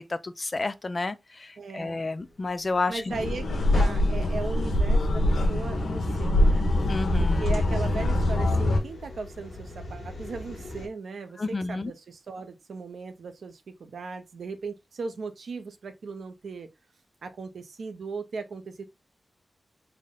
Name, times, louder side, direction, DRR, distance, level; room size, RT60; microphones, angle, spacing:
voice 1, 0.0-3.1 6.9-7.5 11.4-11.9, left 3 dB, 30° left, 0.3 m, -31 dB
voice 2, 1.6-2.0 2.9-6.7 7.2-16.7 17.2-18.8, right 4 dB, 80° right, 0.6 m, -37 dB
sound 1, 2.2-10.9, left 1 dB, 65° left, 1.2 m, -45 dB
sound 2, 3.1-8.8, left 1 dB, 80° left, 0.8 m, -23 dB
3.5 x 2.1 x 3.6 m
wide cardioid pair, 150°, 0 cm